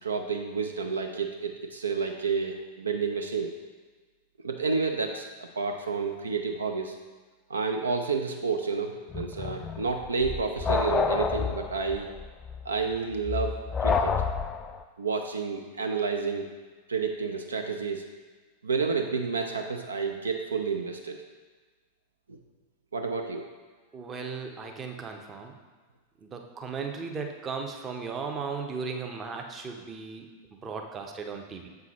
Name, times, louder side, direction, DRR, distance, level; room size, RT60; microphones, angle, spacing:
voice 1, 0.0-3.5 4.4-7.0 7.5-12.1 12.6-13.6 13.8-14.2 15.0-16.5 16.9-18.1 18.6-21.2 22.3-22.4 22.9-23.5, right 5 dB, 75° right, 5 dB, 0.4 m, -30 dB
sound 1, 9.1-14.8, left 5 dB, 20° left, 0.3 m, -29 dB
voice 2, 23.9-25.5 26.2-30.3 30.6-31.7, right 5 dB, 25° right, 3 dB, 0.7 m, -36 dB
7.4 x 5.8 x 3.0 m, 1.4 s
figure-of-eight pair, 90°, 0 cm